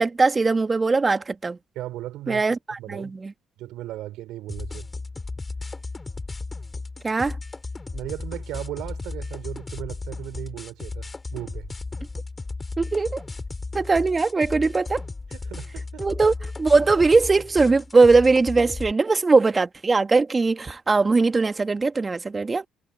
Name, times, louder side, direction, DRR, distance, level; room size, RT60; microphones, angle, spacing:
voice 1, 0.0-1.6 2.3-3.3 7.0-7.4 12.8-13.2 13.7-15.0 16.0-22.7, right 3 dB, 30° right, 2.0 m, -20 dB
voice 2, 1.7-2.4 2.8-3.1 3.6-4.9 7.9-11.7 15.3-16.0, right 15 dB, 75° right, 4.1 m, -36 dB
sound 1, 4.5-18.9, left 3 dB, 25° left, 4.6 m, -35 dB
hypercardioid pair, 55°, 0 cm